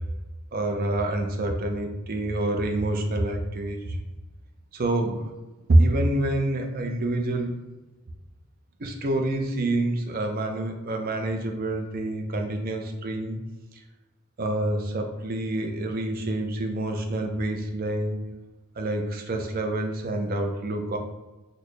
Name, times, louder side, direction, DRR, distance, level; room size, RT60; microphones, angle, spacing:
voice 1, 0.5-4.0 4.7-5.3 5.7-7.6 8.8-13.4 14.4-18.2 18.8-21.0, right 1 dB, 45° right, 3 dB, 0.5 m, -26 dB
4.1 x 2.1 x 3.2 m, 1.1 s
head